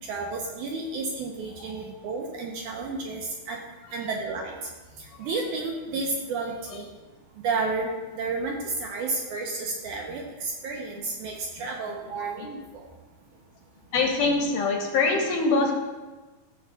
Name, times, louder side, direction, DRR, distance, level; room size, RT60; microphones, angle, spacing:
voice 1, 0.0-3.6 3.9-4.5 5.0-6.9 7.4-12.8, right 3 dB, 75° right, 0 dB, 1.9 m, -31 dB
voice 2, 13.9-15.7, left 3 dB, 75° left, 2 dB, 2.1 m, -24 dB
15.0 x 6.4 x 2.3 m, 1.2 s
omnidirectional pair, 4.1 m